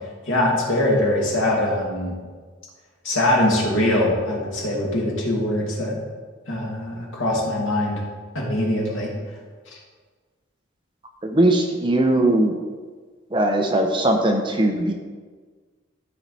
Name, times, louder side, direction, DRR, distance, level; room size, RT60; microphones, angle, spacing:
voice 1, 0.3-2.1 3.0-6.0 6.5-8.0 8.3-9.1, left 1 dB, 70° left, -3 dB, 2.3 m, -22 dB
voice 2, 11.2-12.5 13.3-14.9, right 1 dB, 25° right, 2 dB, 0.8 m, -19 dB
13.0 x 4.8 x 4.1 m, 1.5 s
head